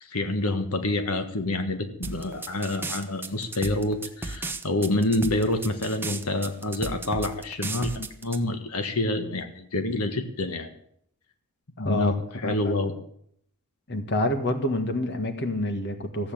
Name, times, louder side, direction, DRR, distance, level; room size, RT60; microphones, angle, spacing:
voice 1, 0.0-10.7 11.8-12.1 12.4-12.9, left 2 dB, 75° left, 7 dB, 1.5 m, -27 dB
sound 1, 2.0-8.4, right 3 dB, 10° right, 1.1 m, -34 dB
voice 2, 11.8-12.7 13.9-16.3, left 1 dB, 50° left, 7 dB, 1.7 m, -27 dB
15.0 x 8.5 x 8.7 m, 0.69 s
head